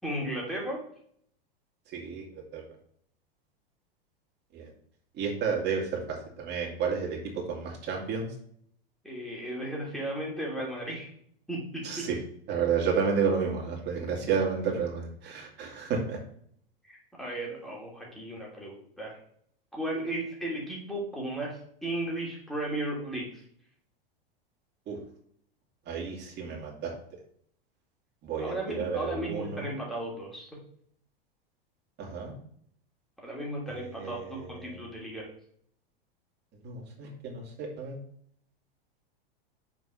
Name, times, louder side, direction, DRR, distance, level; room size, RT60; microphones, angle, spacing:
voice 1, 0.0-0.8 9.0-11.1 11.5-12.1 16.9-19.2 19.7-23.4 28.4-30.6 33.2-35.3, right 1 dB, ahead, -4 dB, 2.9 m, -35 dB
voice 2, 1.9-2.6 4.5-4.7 5.2-8.3 11.8-12.2 12.5-16.2 24.9-25.0 25.9-26.9 28.2-29.6 32.0-32.4 33.8-34.8 36.6-38.0, right 6 dB, 35° right, 0 dB, 2.6 m, -31 dB
6.1 x 4.6 x 5.0 m, 0.64 s
hypercardioid pair, 110°, 29 cm